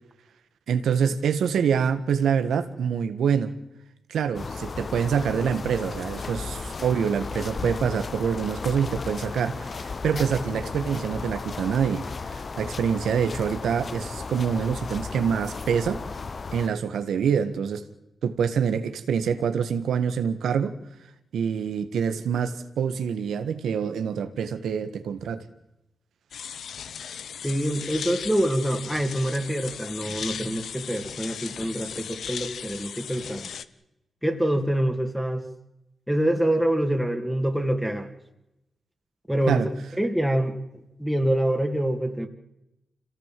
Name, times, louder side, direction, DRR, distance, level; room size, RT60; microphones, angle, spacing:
voice 1, 0.7-3.5 4.1-16.0 16.5-17.8 18.2-20.7 21.3-25.4 39.5-39.7, right 7 dB, 85° right, 11 dB, 1.6 m, -26 dB
sound 1, 4.3-16.7, left 4 dB, 50° left, 1.1 m, -35 dB
sound 2, 26.3-33.7, left 7 dB, 80° left, 0.9 m, -37 dB
voice 2, 27.4-33.5 34.2-35.4 36.1-38.1 39.3-42.3, right 1 dB, ahead, 4 dB, 2.6 m, -26 dB
26.5 x 17.0 x 7.7 m, 0.90 s
cardioid pair, 65°, 0 cm